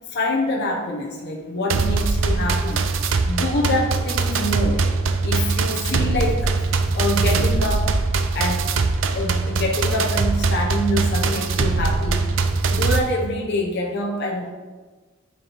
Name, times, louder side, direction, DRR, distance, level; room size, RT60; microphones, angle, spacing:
voice 1, 0.1-2.8 3.2-4.9 5.2-6.7 6.9-8.0 8.3-8.7 9.1-12.3 12.7-14.5, left 1 dB, 60° left, 0 dB, 0.8 m, -25 dB
sound 1, 1.7-13.0, right 3 dB, 70° right, 0.5 m, -21 dB
9.0 x 4.6 x 3.1 m, 1.4 s
head